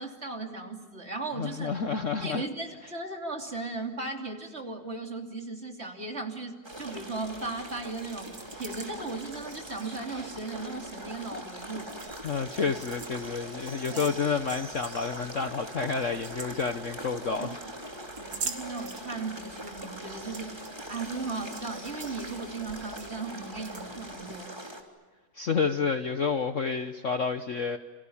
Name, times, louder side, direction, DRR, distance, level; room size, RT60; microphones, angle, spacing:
voice 1, 0.0-1.8 2.2-11.9 13.9-14.1 17.4-17.5 18.2-20.6 20.9-24.6, right 3 dB, 35° right, 3 dB, 3.2 m, -37 dB
voice 2, 1.4-2.4 12.2-17.6 25.3-27.8, left 5 dB, 45° left, 8 dB, 1.2 m, -29 dB
sound 1, 6.6-24.8, right 1 dB, 15° right, 3.2 m, -42 dB
sound 2, 6.7-24.3, right 5 dB, 65° right, 2.9 m, -46 dB
30.0 x 28.0 x 7.2 m, 1.3 s
omnidirectional pair, 2.1 m